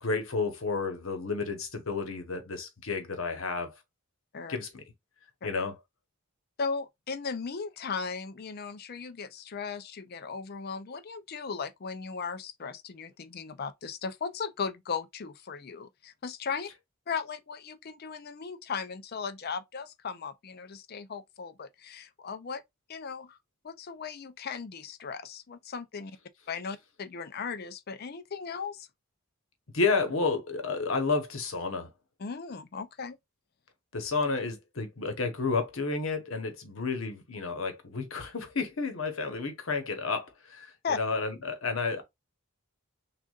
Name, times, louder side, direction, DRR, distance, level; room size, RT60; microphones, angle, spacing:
voice 1, 0.0-3.7 4.5-4.8 5.4-5.8 29.7-31.9 33.9-42.0, left 4 dB, 65° left, 1.0 m, -31 dB
voice 2, 6.6-16.7 17.1-22.6 22.9-23.4 23.6-26.2 26.5-28.9 32.2-33.2 40.8-41.0, left 5 dB, 45° left, 0.5 m, -37 dB
6.2 x 2.4 x 2.4 m
head